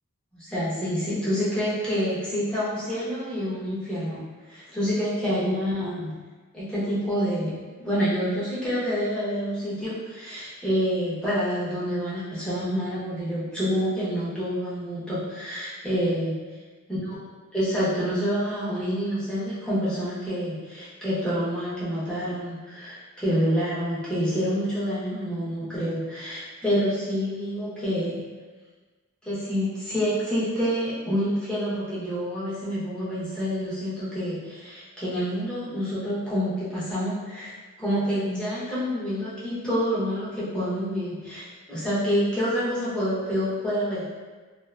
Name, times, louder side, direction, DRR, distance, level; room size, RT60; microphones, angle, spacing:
voice 1, 0.3-4.2 4.5-6.2 6.5-16.4 16.9-17.2 17.5-28.2 29.2-37.5 37.8-44.1, equal, 5° left, -11 dB, 0.7 m, -27 dB
2.5 x 2.4 x 2.2 m, 1.4 s
head